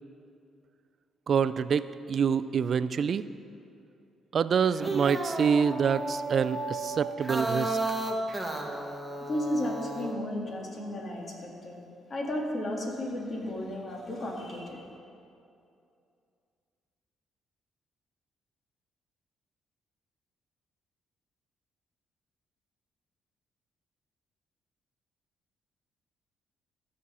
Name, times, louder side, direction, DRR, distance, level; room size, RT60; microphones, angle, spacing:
voice 1, 1.3-3.3 4.3-8.0, right 7 dB, 55° right, 14 dB, 0.3 m, -26 dB
sound 1, 4.6-10.1, right 2 dB, 10° right, 1.3 m, -33 dB
voice 2, 9.3-11.8 12.1-14.9, left 1 dB, 45° left, 0 dB, 2.0 m, -33 dB
14.0 x 6.2 x 5.6 m, 2.5 s
cardioid pair, 90°, 0 cm